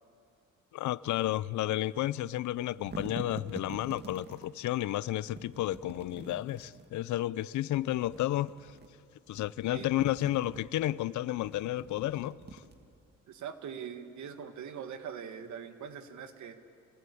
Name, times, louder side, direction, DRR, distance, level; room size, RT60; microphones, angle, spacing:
voice 1, 0.7-8.5 9.3-12.6, left 14 dB, 75° left, 0.6 m, -32 dB
sound 1, 2.5-4.5 5.3-6.9 7.8-8.9 9.3-10.8 11.3-13.1, right 3 dB, 35° right, 2.3 m, -46 dB
voice 2, 13.3-16.6, right 7 dB, 70° right, 1.9 m, -42 dB
27.5 x 19.0 x 8.5 m
cardioid pair, 90°, 30 cm